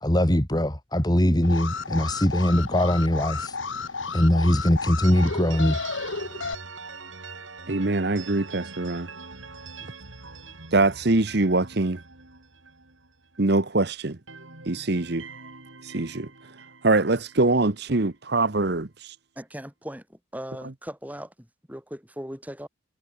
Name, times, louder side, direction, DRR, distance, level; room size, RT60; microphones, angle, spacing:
voice 1, 0.0-3.6 4.1-5.8, equal, 20° left, 1.8 m, -21 dB
Alarm, 1.4-6.5, left 4 dB, 80° left, 2.2 m, -32 dB
sound 1, 5.0-13.8 14.0-18.2, right 4 dB, 80° right, 5.4 m, -44 dB
voice 2, 7.7-9.1 10.7-12.0 13.4-14.2 14.7-15.3 15.8-16.3 16.8-19.1, right 2 dB, 55° right, 1.1 m, -23 dB
voice 3, 19.4-22.7, equal, 10° right, 5.3 m, -39 dB
head